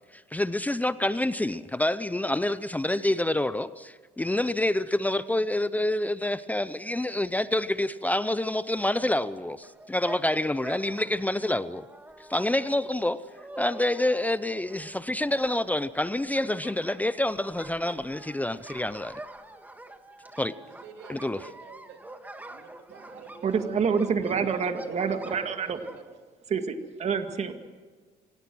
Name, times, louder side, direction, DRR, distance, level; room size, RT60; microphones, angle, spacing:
voice 1, 0.1-11.9 12.3-13.2 13.6-19.2 20.4-20.5 21.1-21.4, left 1 dB, 10° left, 0.6 m, -27 dB
sound 1, 9.6-26.0, right 1 dB, 10° right, 1.7 m, -46 dB
voice 2, 20.3-22.0 22.4-26.0, right 7 dB, 85° right, 3.3 m, -49 dB
voice 3, 23.4-25.8 26.5-27.5, right 6 dB, 40° right, 2.0 m, -27 dB
26.5 x 17.5 x 6.2 m
cardioid pair, 110°, 17 cm